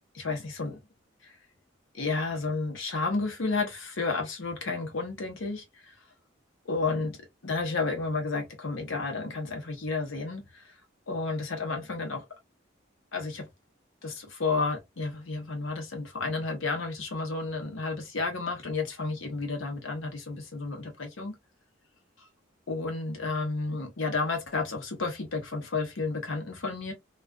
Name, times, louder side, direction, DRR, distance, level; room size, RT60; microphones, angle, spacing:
voice 1, 0.1-0.8 1.2-1.4 1.9-5.9 6.7-7.2 7.4-10.7 11.1-12.2 13.1-13.4 14.0-21.3 22.2-22.3 22.7-26.9, left 3 dB, 90° left, 0.9 m, -31 dB
2.3 x 2.3 x 2.3 m
head